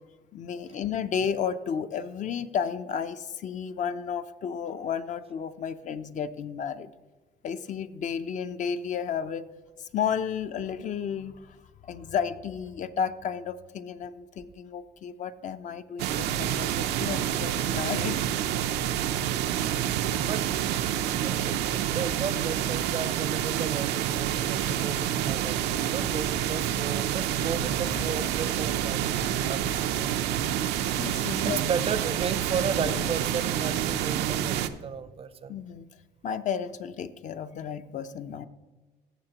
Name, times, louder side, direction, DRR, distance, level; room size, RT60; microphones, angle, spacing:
voice 1, 0.3-6.9 7.4-9.5 9.8-11.6 11.8-18.2 30.9-31.6 35.5-35.9 36.2-38.5, left 7 dB, 45° left, 11 dB, 0.5 m, -32 dB
sound 1, 16.0-34.7, right 11 dB, 85° right, 0.5 m, -28 dB
voice 2, 21.2-29.1 29.5-30.2 31.4-35.6, right 6 dB, 35° right, 13 dB, 0.5 m, -34 dB
sound 2, 25.6-31.9, left 3 dB, 75° left, 1.0 m, -47 dB
sound 3, 27.8-28.7 29.2-29.3 29.5-30.0 30.3-31.0 31.9-34.2, left 2 dB, 90° left, 2.1 m, -44 dB
14.5 x 6.9 x 2.9 m, 1.2 s
cardioid pair, 110°, 17 cm